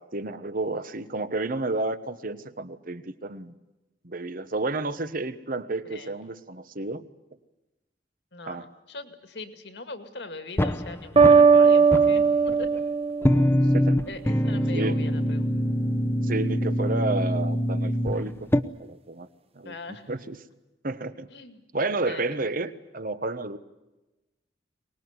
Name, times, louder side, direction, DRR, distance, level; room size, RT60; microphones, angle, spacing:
voice 1, 0.0-3.5 4.0-7.0 8.5-8.6 13.7-14.0 14.7-15.0 16.2-19.3 19.5-19.7 20.1-20.4 20.8-21.3 21.7-23.6, right 2 dB, 50° right, 11 dB, 1.2 m, -31 dB
voice 2, 5.8-6.2 8.3-12.7 14.1-15.5 19.6-20.1 21.3-21.6 22.1-22.2 22.5-22.6, left 2 dB, 70° left, 8 dB, 2.3 m, -40 dB
sound 1, 10.6-11.6 11.9-12.8 13.2-18.6, equal, 15° left, 0.9 m, -24 dB
sound 2, 11.2-14.0, right 5 dB, 35° right, 0.8 m, -18 dB
24.0 x 20.0 x 9.7 m, 1.1 s
head